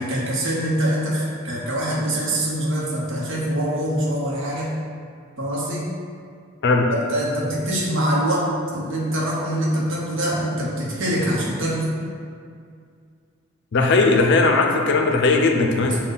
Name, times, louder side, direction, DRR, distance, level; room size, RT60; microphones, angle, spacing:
voice 1, 0.0-4.7 5.4-5.9 6.9-11.9 15.8-16.0, right 1 dB, 65° right, -4 dB, 0.8 m, -24 dB
voice 2, 13.7-16.0, left 3 dB, 55° left, 2 dB, 0.5 m, -18 dB
5.4 x 2.2 x 3.9 m, 2.2 s
head